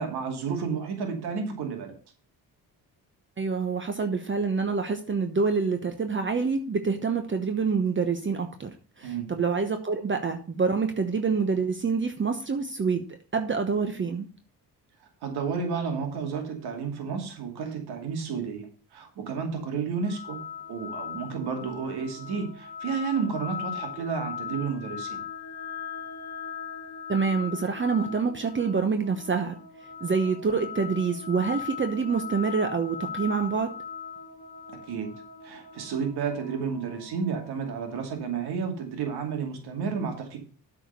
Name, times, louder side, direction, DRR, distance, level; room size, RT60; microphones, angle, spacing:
voice 1, 0.0-1.9 9.0-9.3 15.2-20.4 20.7-25.2 34.9-35.1 35.4-40.4, right 5 dB, 80° right, 3 dB, 2.6 m, -31 dB
voice 2, 3.4-8.7 9.0-14.3 27.1-29.5 30.0-33.7, right 5 dB, 30° right, 7 dB, 1.0 m, -26 dB
sound 1, 19.9-38.1, left 7 dB, 25° left, 2.0 m, -39 dB
8.7 x 4.9 x 6.7 m, 0.40 s
cardioid pair, 80°, 38 cm